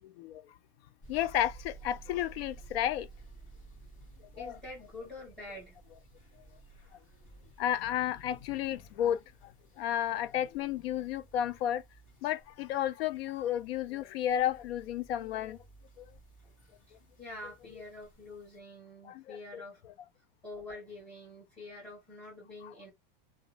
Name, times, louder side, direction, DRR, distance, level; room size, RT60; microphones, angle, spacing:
voice 1, 0.2-0.5 1.1-3.1 4.4-4.6 7.6-9.5 9.8-11.8 12.2-15.6 16.0-16.1 19.0-19.6 22.6-22.7, left 11 dB, 85° left, 0.5 m, -32 dB
sound 1, 1.0-18.6, right 3 dB, 25° left, 1.3 m, -55 dB
voice 2, 4.4-5.8 16.4-16.5 16.9-19.8 20.4-22.9, left 2 dB, 5° left, 1.8 m, -46 dB
2.9 x 2.2 x 2.6 m
supercardioid pair, 165°, 29 cm